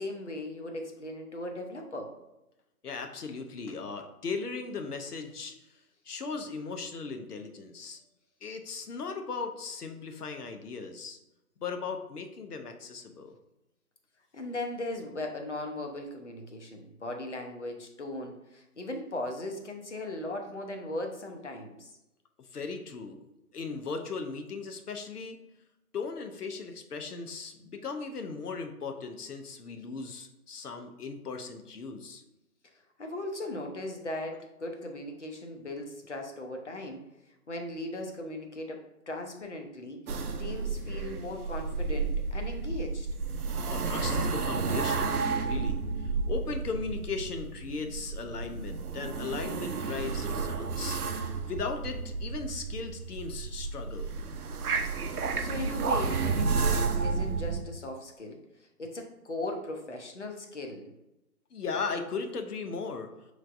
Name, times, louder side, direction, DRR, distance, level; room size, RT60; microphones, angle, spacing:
voice 1, 0.0-2.1 14.3-21.9 33.0-37.0 37.5-40.0 40.4-43.1 55.4-60.9, left 1 dB, 50° left, 3 dB, 0.7 m, -38 dB
voice 2, 2.8-5.7 6.0-8.0 8.4-11.2 11.6-13.4 22.4-23.2 23.5-25.4 25.9-32.2 43.7-54.1 61.5-63.1, left 4 dB, 85° left, 6 dB, 0.7 m, -37 dB
sound 1, 40.1-57.6, right 4 dB, 75° right, 0.6 m, -31 dB
5.2 x 3.2 x 2.5 m, 0.94 s
figure-of-eight pair, 175°, 45 cm